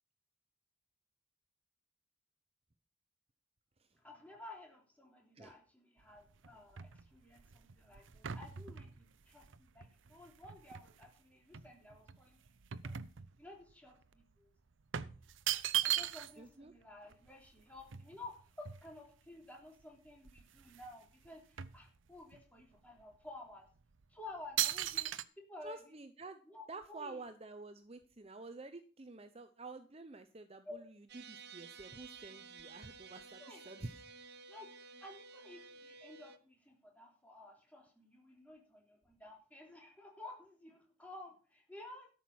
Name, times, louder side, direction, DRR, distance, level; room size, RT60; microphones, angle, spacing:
voice 1, 4.0-12.4 12.8-13.0 13.4-14.5 15.8-23.7 24.1-25.8 26.4-27.2 30.6-30.8 33.4-33.7 34.5-34.7 35.0-42.1, left 2 dB, 5° left, 0 dB, 3.3 m, -53 dB
sound 1, 6.0-11.1 11.5-13.7 14.0-14.2 14.9-16.5 16.8-16.9 17.1-19.3 19.8-19.9 20.2-20.9 21.2-22.4 23.0-23.2 23.8-24.0 24.6-25.2, right 12 dB, 75° right, 0.7 m, -39 dB
voice 2, 16.4-16.7 25.6-26.4 26.7-30.8 31.1-34.0, right 3 dB, 30° right, 9 dB, 0.7 m, -49 dB
sound 2, 31.1-36.4, right 5 dB, 55° right, 1.0 m, -54 dB
13.0 x 6.1 x 7.2 m, 0.39 s
head